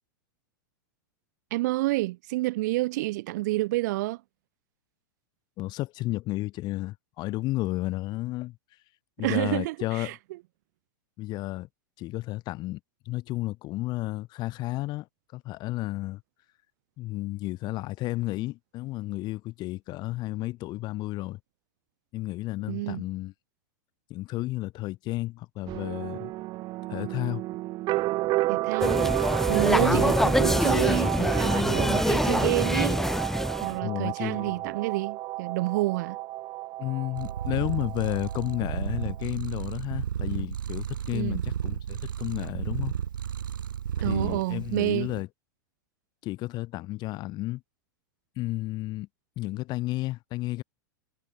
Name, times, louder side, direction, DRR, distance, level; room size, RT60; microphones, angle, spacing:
voice 1, 1.5-4.2 9.2-10.1 22.7-23.0 28.5-33.0 33.6-36.2 41.1-41.4 44.0-45.1, right 19 dB, 60° right, 5.4 m, -29 dB
voice 2, 5.6-8.6 9.2-10.2 11.2-11.7 12.0-12.8 13.0-15.1 15.3-16.2 17.0-21.4 22.1-23.3 24.1-26.3 26.9-27.4 29.8-30.1 33.8-34.6 36.8-42.9 44.0-45.3 46.2-47.6 48.4-49.1 49.4-50.6, left 18 dB, 40° left, 4.5 m, -32 dB
Suspense Episode, 25.7-39.2, right 18 dB, 40° right, 3.5 m, -31 dB
sound 1, 28.8-33.8, left 1 dB, 5° left, 2.5 m, -25 dB
Purr, 37.2-45.2, right 9 dB, 80° right, 3.8 m, -33 dB
hypercardioid pair, 105°, 11 cm